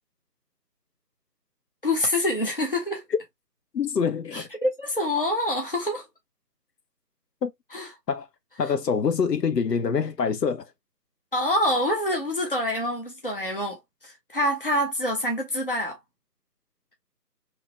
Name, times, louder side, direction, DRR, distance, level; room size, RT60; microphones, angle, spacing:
voice 1, 1.8-3.0 4.3-6.1 7.7-7.9 11.3-13.8 14.0-16.0, left 1 dB, 35° left, 0.7 m, -26 dB
voice 2, 3.7-4.5 7.4-7.5 8.1-8.3 8.6-10.7, left 6 dB, 80° left, 0.8 m, -25 dB
2.9 x 2.3 x 2.8 m
figure-of-eight pair, 175°, 49 cm